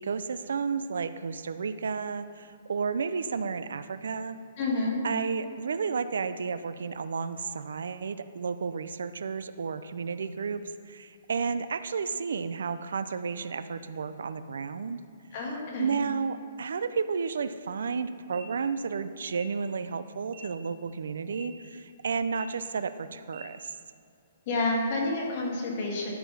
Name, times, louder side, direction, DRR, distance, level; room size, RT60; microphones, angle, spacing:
voice 1, 0.0-4.4 5.0-10.6 10.9-15.0 15.8-23.7, right 5 dB, 80° right, 12 dB, 0.4 m, -32 dB
voice 2, 4.6-5.0 15.3-16.0 24.5-26.1, left 2 dB, 30° left, -2 dB, 1.8 m, -29 dB
sound 1, 18.2-18.4 19.2-19.4 20.2-20.4 21.2-21.4 22.2-22.4 23.2-23.4, right 9 dB, 30° right, 1.4 m, -50 dB
12.5 x 4.8 x 5.5 m, 2.4 s
hypercardioid pair, 175°, 0 cm